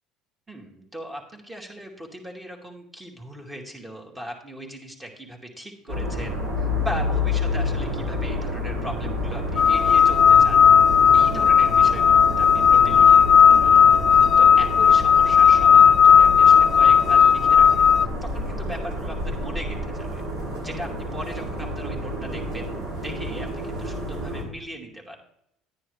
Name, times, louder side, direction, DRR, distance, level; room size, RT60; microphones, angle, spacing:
voice 1, 0.5-10.6 11.1-13.2 13.6-13.8 14.1-17.9 18.2-20.2 20.6-22.7 23.0-25.2, equal, 15° right, 1 dB, 2.6 m, -38 dB
sound 1, 5.9-24.4, left 1 dB, 70° right, 3.8 m, -29 dB
sound 2, 9.6-18.1, left 7 dB, 45° left, 0.3 m, -15 dB
10.5 x 9.7 x 3.3 m, 0.76 s
hypercardioid pair, 75°, 0 cm